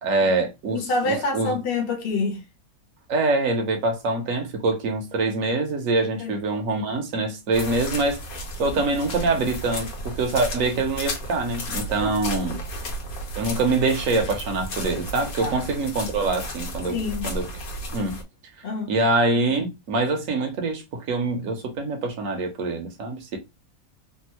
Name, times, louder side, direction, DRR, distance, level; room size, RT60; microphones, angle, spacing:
voice 1, 0.0-1.6 3.1-8.2 8.6-12.6 13.4-17.5 17.9-18.2 18.9-23.4, right 3 dB, 65° right, 1.3 m, -24 dB
voice 2, 0.7-2.4 6.2-6.4 12.0-12.1 15.4-15.7 16.9-17.3 18.6-19.0, left 3 dB, 45° left, 0.9 m, -27 dB
sound 1, 7.5-18.2, equal, 75° left, 1.4 m, -33 dB
3.5 x 2.6 x 2.9 m
omnidirectional pair, 1.5 m